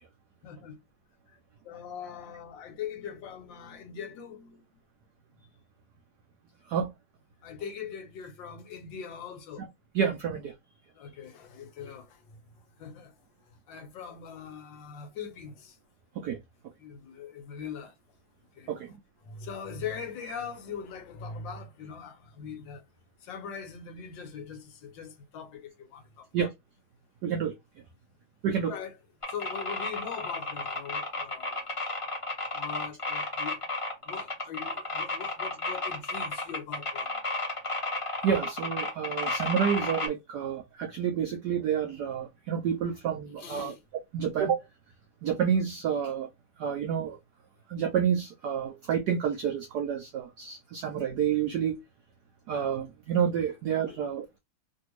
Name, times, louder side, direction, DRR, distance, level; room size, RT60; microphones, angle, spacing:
voice 1, 0.4-0.8 1.3-1.4 1.6-4.6 7.4-9.6 10.9-12.4 12.8-13.1 13.4-15.8 16.8-18.0 18.5-18.7 19.2-22.8 23.2-26.5 28.6-29.0 29.3-31.7 32.5-33.6 34.0-37.2 43.4-43.8 53.9-54.1, left 7 dB, 70° left, 1.4 m, -41 dB
voice 2, 9.9-10.5 16.2-16.4 18.7-19.0 26.3-26.5 27.2-27.5 28.4-28.7 38.2-43.7 44.1-44.6 45.2-46.3 46.6-47.2 47.7-51.8 52.5-54.4, right 8 dB, 90° right, 0.8 m, -29 dB
sound 1, 29.2-40.1, left 2 dB, 40° left, 0.4 m, -32 dB
3.3 x 2.7 x 3.0 m
omnidirectional pair, 2.3 m